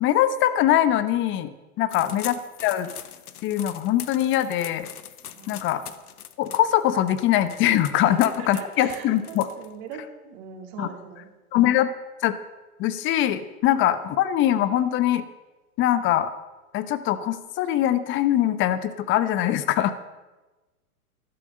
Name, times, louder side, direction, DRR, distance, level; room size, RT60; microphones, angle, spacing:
voice 1, 0.0-1.5 1.8-2.3 2.6-2.9 3.4-4.9 5.5-5.8 6.4-9.5 10.8-10.9 11.5-11.9 12.2-12.3 12.8-15.2 15.8-16.3 16.7-19.9, left 12 dB, 25° left, 13 dB, 0.9 m, -22 dB
voice 2, 1.8-2.2 5.2-5.9 7.9-11.3, right 6 dB, 40° right, 2 dB, 3.1 m, -42 dB
sound 1, 1.9-9.9, left 10 dB, 75° left, 1.2 m, -42 dB
13.5 x 12.0 x 6.4 m, 1.2 s
hypercardioid pair, 120°, 45 cm